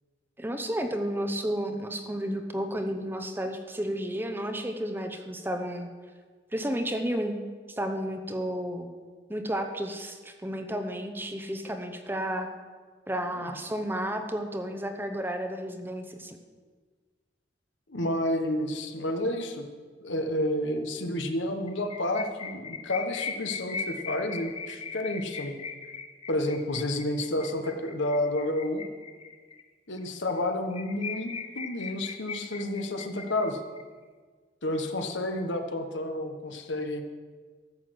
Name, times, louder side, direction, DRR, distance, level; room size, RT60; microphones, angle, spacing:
voice 1, 0.4-5.9 6.5-7.4 7.7-8.9 9.3-12.5 13.1-16.4, equal, 10° right, 6 dB, 0.8 m, -32 dB
voice 2, 17.9-19.7 20.0-25.6 26.3-28.8 29.9-33.6 34.6-37.0, left 1 dB, 75° left, 6 dB, 1.3 m, -30 dB
sound 1, 21.7-29.6 30.0-30.1 30.4-30.5 30.7-33.8, left 5 dB, 30° left, 0.7 m, -39 dB
14.0 x 6.4 x 8.0 m, 1.5 s
head